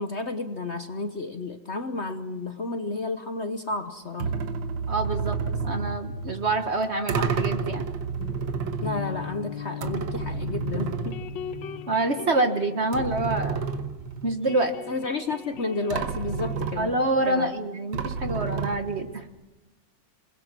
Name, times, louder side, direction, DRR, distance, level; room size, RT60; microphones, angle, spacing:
voice 1, 0.0-4.3 8.8-11.2 14.9-16.9 17.2-17.5, left 3 dB, 45° left, 8 dB, 1.1 m, -31 dB
sound 1, 4.2-12.0 12.3-12.4 12.9-14.6 15.5-15.6 15.9-17.3 17.9-19.2, right 5 dB, 90° right, 1.9 m, -31 dB
voice 2, 4.9-5.4 5.6-7.9 11.9-13.6 14.2-14.7 16.8-19.2, right 2 dB, 40° right, 7 dB, 1.4 m, -26 dB
sound 2, 8.2-14.0 14.3-17.7, left 9 dB, 75° left, 1.7 m, -40 dB
27.5 x 21.0 x 6.1 m, 1.0 s
omnidirectional pair, 2.0 m